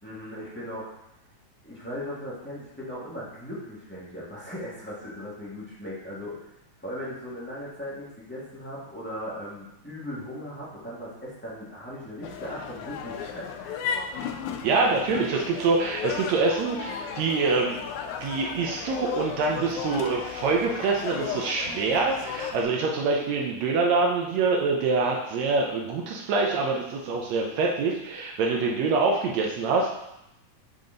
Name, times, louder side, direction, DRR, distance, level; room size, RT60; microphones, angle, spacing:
voice 1, 0.0-0.9 1.6-6.4 6.8-14.0, equal, 20° left, -9 dB, 0.3 m, -38 dB
sound 1, 12.2-22.6, left 7 dB, 80° left, 1.7 m, -35 dB
voice 2, 14.6-17.8 18.2-30.0, right 4 dB, 75° right, 0 dB, 1.6 m, -25 dB
8.9 x 3.9 x 3.8 m, 0.87 s
omnidirectional pair, 3.8 m